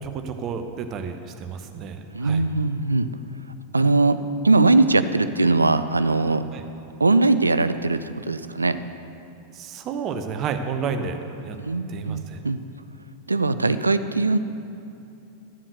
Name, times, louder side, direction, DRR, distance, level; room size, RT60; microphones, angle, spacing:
voice 1, 0.0-2.4 6.5-6.6 9.5-11.2 11.4-11.6 11.9-12.4, right 6 dB, 35° right, 6 dB, 0.9 m, -31 dB
voice 2, 2.1-3.1 3.7-4.2 4.4-6.4 7.0-8.8 11.6-12.6 13.3-14.4, right 3 dB, 80° right, 12 dB, 0.4 m, -20 dB
12.5 x 7.5 x 6.6 m, 2.8 s
figure-of-eight pair, 90°, 0 cm